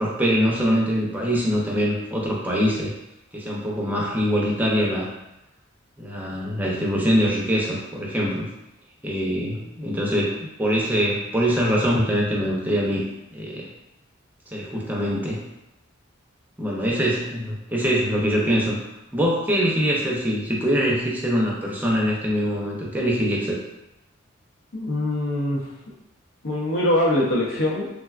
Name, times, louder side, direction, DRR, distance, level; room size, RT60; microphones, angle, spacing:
voice 1, 0.0-2.9 3.3-5.1 6.0-8.5 9.0-13.0 13.3-13.7 14.5-15.4 16.6-18.8 19.1-23.6, equal, 10° right, -3 dB, 0.5 m, -23 dB
voice 2, 24.7-25.9 26.4-27.9, left 1 dB, 75° left, -3 dB, 0.7 m, -23 dB
3.5 x 2.2 x 2.3 m, 0.89 s
head